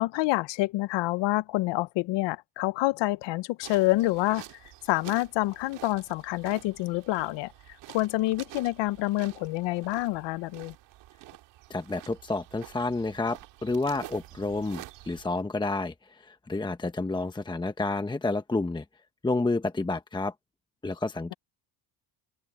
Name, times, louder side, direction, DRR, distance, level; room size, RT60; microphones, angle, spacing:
voice 1, 0.0-4.4 4.9-7.5 7.9-10.7, left 19 dB, 80° left, 0.9 m, -27 dB
sound 1, 3.6-15.2, right 16 dB, 80° right, 2.3 m, -48 dB
voice 2, 11.7-18.8 19.2-20.3 20.8-21.3, left 3 dB, 10° left, 1.0 m, -30 dB
open air
cardioid pair, 110°, 42 cm